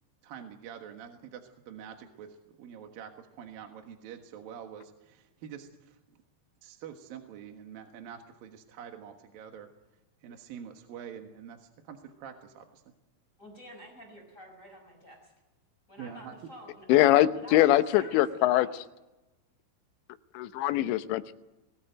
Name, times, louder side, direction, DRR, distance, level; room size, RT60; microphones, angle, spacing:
voice 1, 0.2-6.0 6.6-9.7 10.2-12.9 16.0-16.4, right 8 dB, 60° right, 5 dB, 2.7 m, -46 dB
voice 2, 13.4-15.3 15.9-17.6 17.9-18.7, equal, 15° left, 2 dB, 6.1 m, -49 dB
voice 3, 16.9-18.7 20.3-21.3, left 14 dB, 80° left, 11 dB, 3.0 m, -23 dB
22.0 x 18.5 x 9.1 m, 1.0 s
omnidirectional pair, 5.4 m